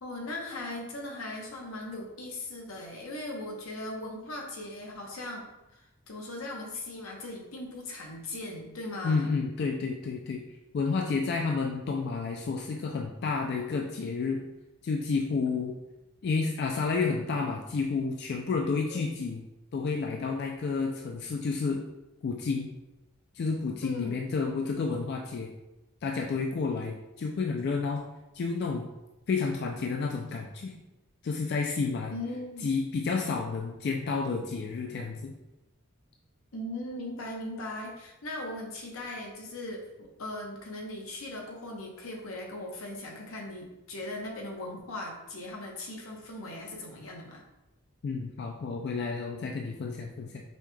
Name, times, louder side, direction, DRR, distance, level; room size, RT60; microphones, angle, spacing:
voice 1, 0.0-5.5 5.7-5.8 6.1-9.3 18.9-19.1 23.8-24.2 32.1-32.7 36.5-47.4, left 1 dB, 85° left, 0 dB, 0.9 m, -39 dB
voice 2, 9.0-10.4 10.7-14.4 14.8-15.7 16.2-19.4 19.7-21.8 22.2-22.7 23.3-25.5 26.0-28.0 28.3-28.9 29.3-30.7 31.2-32.1 32.6-35.3 48.0-50.4, left 4 dB, 50° left, 1 dB, 0.3 m, -30 dB
5.4 x 3.1 x 2.2 m, 0.97 s
head